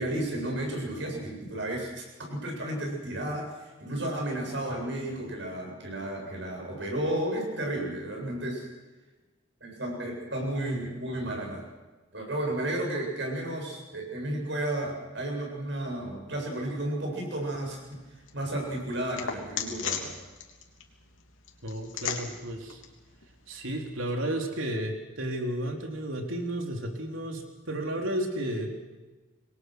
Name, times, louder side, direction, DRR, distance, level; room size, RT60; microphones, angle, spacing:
voice 1, 0.0-8.7 9.6-11.7 12.1-18.0 18.3-20.1, right 1 dB, 65° right, 0 dB, 8.0 m, -33 dB
sound 1, 17.3-24.1, left 7 dB, 80° left, 3.4 m, -40 dB
voice 2, 21.6-22.8 23.5-28.7, right 1 dB, 80° right, 3 dB, 3.7 m, -32 dB
27.5 x 21.5 x 6.4 m, 1.2 s
head